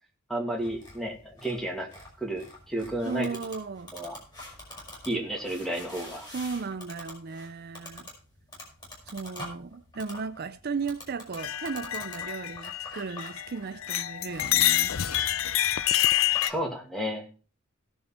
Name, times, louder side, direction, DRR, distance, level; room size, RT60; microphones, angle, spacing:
voice 1, 0.3-1.9 2.2-3.3 3.9-4.2 5.1-6.3 16.4-17.3, right 1 dB, ahead, 2.4 m, -32 dB
sound 1, 0.6-16.6, left 2 dB, 20° left, 4.8 m, -46 dB
voice 2, 3.1-3.9 6.3-8.1 9.1-15.0, right 4 dB, 45° right, 0.5 m, -35 dB
sound 2, 11.4-13.5 13.8-16.5, left 13 dB, 65° left, 0.5 m, -27 dB
17.5 x 6.9 x 4.3 m
head